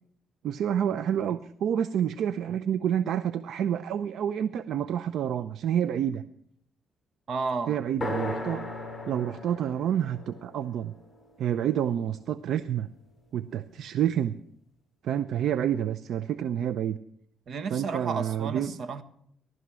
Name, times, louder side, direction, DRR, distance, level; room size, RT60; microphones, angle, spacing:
voice 1, 0.4-6.2 7.7-8.6 9.0-10.9 11.4-12.9 13.3-14.3 15.0-17.0 17.7-18.7, right 9 dB, 75° right, 13 dB, 0.6 m, -28 dB
voice 2, 7.3-7.8 17.5-19.0, right 4 dB, 60° right, 10 dB, 1.4 m, -32 dB
sound 1, 8.0-11.9, left 2 dB, 10° left, 7.1 m, -37 dB
18.0 x 12.5 x 6.2 m, 0.71 s
cardioid pair, 90°, 0 cm